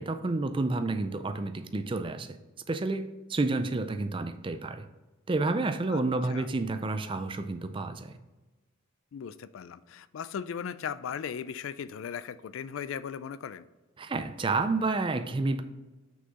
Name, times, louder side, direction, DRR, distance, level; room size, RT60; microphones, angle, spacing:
voice 1, 0.0-2.4 2.7-4.9 5.3-8.2 14.0-15.6, right 3 dB, 25° right, 10 dB, 0.4 m, -30 dB
voice 2, 9.1-13.7, left 7 dB, 75° left, 16 dB, 0.3 m, -37 dB
6.3 x 5.7 x 4.0 m, 1.1 s
head